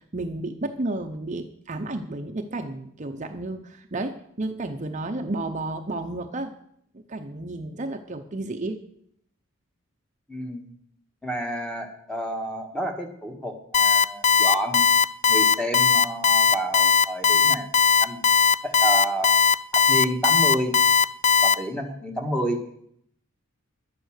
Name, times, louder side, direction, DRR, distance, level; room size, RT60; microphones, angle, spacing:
voice 1, 0.0-6.5 6.9-8.8, right 2 dB, 35° right, 6 dB, 0.8 m, -32 dB
voice 2, 10.3-10.7 11.2-14.8 15.3-17.7 18.0-18.2 18.6-19.3 19.7-20.7 21.4-22.6, right 1 dB, 5° left, 3 dB, 1.6 m, -29 dB
Alarm, 13.7-21.5, left 5 dB, 35° left, 0.4 m, -18 dB
11.5 x 9.4 x 6.5 m, 0.69 s
head